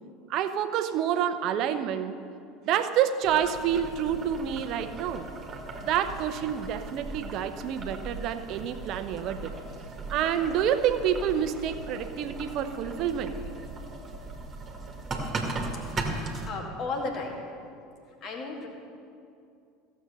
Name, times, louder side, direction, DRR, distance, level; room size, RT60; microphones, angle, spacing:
voice 1, 0.3-2.1 2.6-5.2 5.8-9.5 10.1-13.4, right 9 dB, 50° right, 10 dB, 0.8 m, -28 dB
Boiling, 3.2-16.5, right 2 dB, 25° right, 2.0 m, -38 dB
voice 2, 15.8-17.4 18.2-18.7, left 3 dB, 40° left, 1 dB, 2.2 m, -35 dB
15.5 x 7.5 x 6.9 m, 2.5 s
figure-of-eight pair, 70°, 0 cm